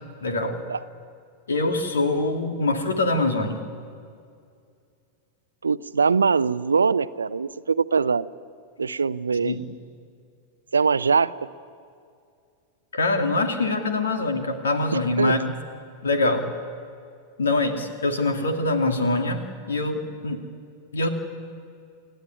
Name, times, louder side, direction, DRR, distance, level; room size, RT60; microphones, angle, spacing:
voice 1, 0.2-0.6 1.5-3.6 9.4-9.6 12.9-15.5 16.0-16.5 17.4-20.4 20.9-21.1, left 2 dB, 70° left, 5 dB, 2.5 m, -24 dB
voice 2, 5.6-8.3 8.8-9.5 10.7-11.4 15.2-15.3, right 5 dB, 75° right, 16 dB, 0.6 m, -22 dB
28.5 x 14.0 x 9.8 m, 2.3 s
figure-of-eight pair, 90°, 0 cm